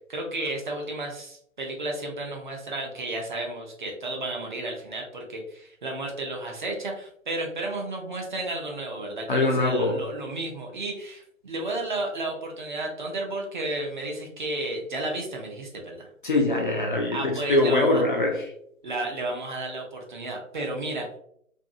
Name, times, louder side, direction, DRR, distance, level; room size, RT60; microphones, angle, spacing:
voice 1, 0.1-16.1 17.1-18.0 18.8-21.2, right 2 dB, 35° right, 0 dB, 0.5 m, -32 dB
voice 2, 9.3-10.0 16.2-18.5, left 2 dB, 40° left, 1 dB, 0.4 m, -23 dB
2.6 x 2.5 x 2.4 m, 0.67 s
figure-of-eight pair, 130°, 41 cm